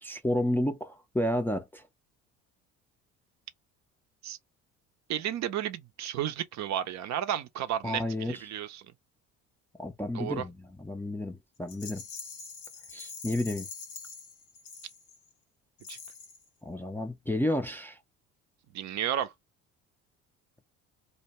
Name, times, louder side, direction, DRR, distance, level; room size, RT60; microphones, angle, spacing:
voice 1, 0.0-1.8 7.8-8.4 9.8-12.0 12.9-13.7 16.6-18.0, left 1 dB, 5° left, 0.4 m, -31 dB
voice 2, 5.1-8.9 10.1-10.4 15.9-16.0 18.7-19.3, right 10 dB, 50° right, 0.5 m, -32 dB
Rattle, 11.7-15.3 15.8-16.5, left 5 dB, 85° left, 0.9 m, -44 dB
2.6 x 2.2 x 2.9 m
hypercardioid pair, 60°, 37 cm